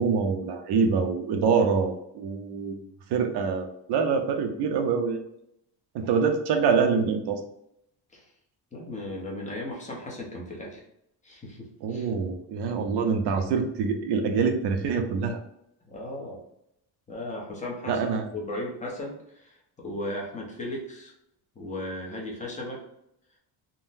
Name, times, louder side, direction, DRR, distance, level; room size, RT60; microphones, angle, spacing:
voice 1, 0.0-2.8 3.1-5.2 5.9-7.4 11.8-15.4 17.9-18.3, right 5 dB, 70° right, 5 dB, 0.6 m, -25 dB
voice 2, 8.7-10.8 11.2-12.1 15.8-16.4 17.1-18.0 18.3-21.1 21.6-22.8, left 1 dB, 15° left, -2 dB, 0.6 m, -36 dB
3.7 x 2.1 x 2.6 m, 0.77 s
cardioid pair, 180°, 42 cm